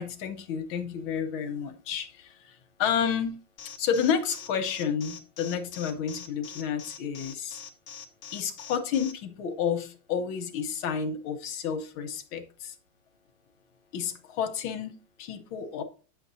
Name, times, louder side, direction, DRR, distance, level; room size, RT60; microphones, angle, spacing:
voice 1, 0.0-3.4 3.8-7.6 8.3-12.7 13.9-14.9 15.2-15.8, left 7 dB, 80° left, 7 dB, 1.7 m, -30 dB
Alarm, 3.6-9.1, left 7 dB, 55° left, 1.2 m, -43 dB
9.7 x 7.0 x 2.7 m, 0.38 s
omnidirectional pair, 2.3 m